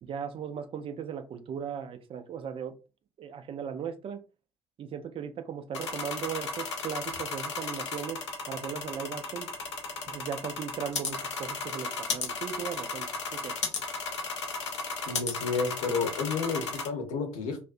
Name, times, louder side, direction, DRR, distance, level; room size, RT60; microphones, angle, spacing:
voice 1, 0.0-2.8 3.2-4.2 4.8-9.5 10.1-13.6, right 7 dB, 40° right, 0.5 m, -37 dB
sound 1, 5.7-16.9, left 4 dB, 80° left, 0.5 m, -35 dB
voice 2, 15.1-17.6, left 4 dB, 60° left, 0.8 m, -31 dB
2.4 x 2.1 x 2.5 m
figure-of-eight pair, 55°, 14 cm